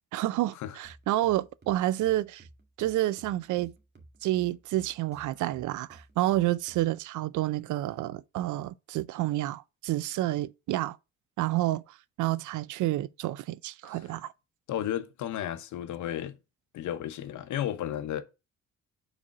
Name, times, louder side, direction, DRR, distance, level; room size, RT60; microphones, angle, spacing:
voice 1, 0.1-2.4 2.8-3.7 4.2-11.0 11.4-11.8 12.2-14.3, right 15 dB, 75° right, 0.5 m, -29 dB
sound 1, 0.8-7.1, right 2 dB, 35° right, 1.9 m, -56 dB
voice 2, 14.7-16.4 16.7-18.2, left 11 dB, 75° left, 0.9 m, -33 dB
4.9 x 4.2 x 5.9 m
cardioid pair, 90°, 30 cm